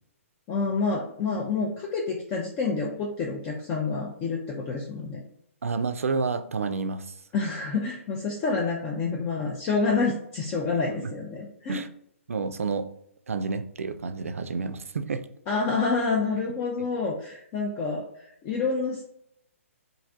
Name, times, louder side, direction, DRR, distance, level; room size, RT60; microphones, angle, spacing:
voice 1, 0.5-5.2 7.3-11.8 15.5-18.0 18.4-19.0, left 4 dB, 25° left, -1 dB, 0.4 m, -28 dB
voice 2, 5.6-7.1 11.0-11.1 11.7-11.9 12.3-12.9 13.3-15.3 16.8-16.9, right 4 dB, 70° right, 10 dB, 0.3 m, -29 dB
3.0 x 2.5 x 2.5 m, 0.72 s
figure-of-eight pair, 125°, 8 cm